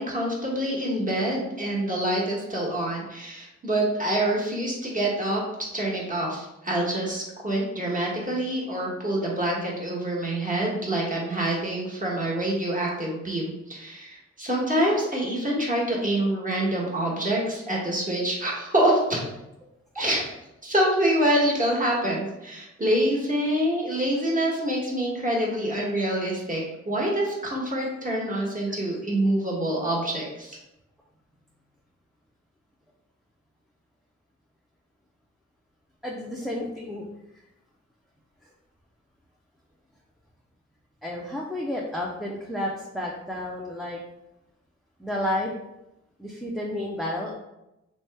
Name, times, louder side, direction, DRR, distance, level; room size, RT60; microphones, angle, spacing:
voice 1, 0.0-5.4 5.7-19.2 19.9-20.2 20.6-30.6, right 1 dB, 25° right, -4 dB, 1.2 m, -26 dB
voice 2, 36.0-37.1 41.0-44.0 45.0-45.5 46.2-47.3, left 1 dB, ahead, -2 dB, 0.4 m, -31 dB
2.9 x 2.2 x 3.3 m, 0.92 s
cardioid pair, 45°, 30 cm